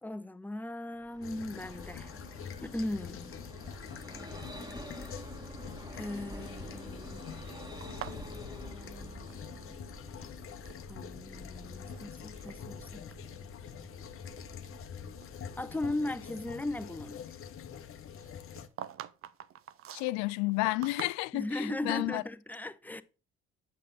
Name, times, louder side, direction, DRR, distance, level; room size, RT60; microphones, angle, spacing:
voice 1, 0.0-2.1 2.6-3.3 5.9-7.2 10.9-13.1 15.6-17.3 21.3-23.0, left 1 dB, 5° left, 0.7 m, -37 dB
Vehicle, 1.0-16.5, equal, 10° right, 1.8 m, -48 dB
sound 1, 1.2-18.7, left 8 dB, 40° left, 1.0 m, -45 dB
sound 2, 7.8-9.8 10.1-10.8 11.5-12.0 12.4-12.6 13.2-13.3 13.9-15.4 15.7-15.9 18.2-21.6, right 11 dB, 40° right, 0.6 m, -46 dB
voice 2, 19.9-22.2, left 22 dB, 55° left, 0.5 m, -31 dB
8.5 x 6.6 x 3.9 m
figure-of-eight pair, 50°, 34 cm